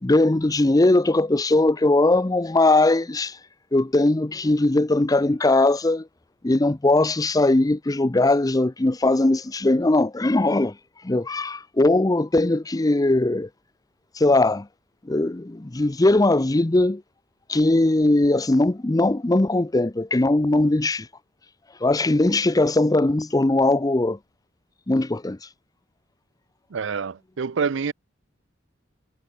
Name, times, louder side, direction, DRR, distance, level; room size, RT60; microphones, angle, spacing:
voice 1, 0.0-3.4 3.7-6.1 6.4-10.7 11.0-13.5 14.2-14.7 15.1-17.0 17.5-21.1 21.8-24.2 24.9-25.4, left 2 dB, 20° left, 0.6 m, -20 dB
voice 2, 26.7-27.9, right 5 dB, 65° right, 0.5 m, -26 dB
head